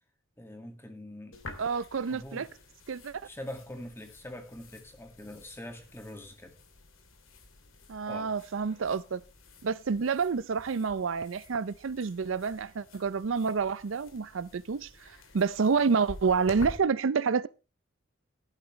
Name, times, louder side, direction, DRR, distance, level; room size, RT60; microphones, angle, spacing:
voice 1, 0.4-1.4 1.7-2.5 3.2-6.6 8.1-8.3, left 1 dB, 10° left, 2.0 m, -44 dB
sound 1, 1.3-16.8, left 2 dB, 80° left, 2.5 m, -50 dB
voice 2, 1.6-2.5 2.9-3.2 7.9-9.2 9.6-17.5, right 5 dB, 75° right, 0.5 m, -28 dB
14.5 x 11.5 x 3.2 m
head